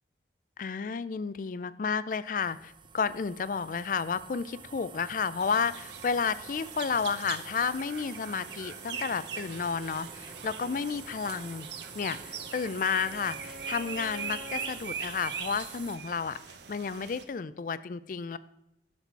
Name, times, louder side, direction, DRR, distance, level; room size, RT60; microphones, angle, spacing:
voice 1, 0.6-11.7 11.9-16.4 16.7-18.4, left 5 dB, 45° left, 16 dB, 0.4 m, -32 dB
sound 1, 2.4-16.0, right 6 dB, 25° right, 0.4 m, -47 dB
sound 2, 5.4-17.2, right 7 dB, 75° right, 0.8 m, -42 dB
Bowed string instrument, 11.6-14.8, left 1 dB, 55° right, 1.7 m, -48 dB
12.5 x 4.2 x 4.5 m, 0.86 s
head